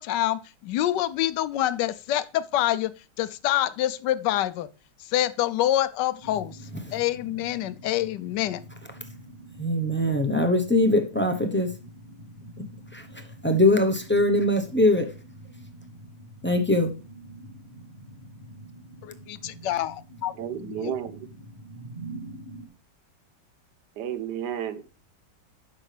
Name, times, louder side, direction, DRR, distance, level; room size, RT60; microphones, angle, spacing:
voice 1, 0.0-2.9 3.2-4.7 5.0-6.6 6.9-8.6 19.0-20.3 20.6-21.0, left 13 dB, 80° left, 1.2 m, -26 dB
sound 1, 6.2-22.7, right 1 dB, 35° right, 3.3 m, -45 dB
voice 2, 6.7-7.0 8.9-9.2 9.6-11.8 12.6-15.2 16.4-16.9, left 1 dB, 20° left, 0.3 m, -23 dB
voice 3, 20.4-21.2 24.0-24.9, right 9 dB, 75° right, 1.4 m, -32 dB
10.5 x 6.5 x 3.3 m
omnidirectional pair, 1.9 m